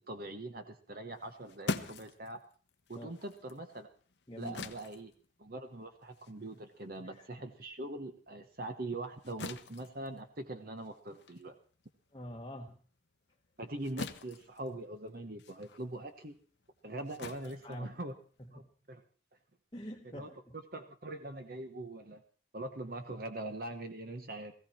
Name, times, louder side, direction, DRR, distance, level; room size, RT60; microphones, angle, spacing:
voice 1, 0.0-2.4 2.9-3.9 4.4-5.1 5.4-11.6 13.6-16.4 16.8-18.1 18.5-18.6 18.9-19.0 20.1-22.2 22.5-24.5, right 2 dB, 50° right, 7 dB, 1.1 m, -42 dB
sound 1, 1.1-7.9 8.3-18.5, left 3 dB, 65° left, 0.9 m, -45 dB
voice 2, 12.1-12.8 17.4-18.0 18.4-18.7 19.7-20.5, equal, 20° left, 0 dB, 1.1 m, -46 dB
17.0 x 15.5 x 4.4 m, 0.41 s
head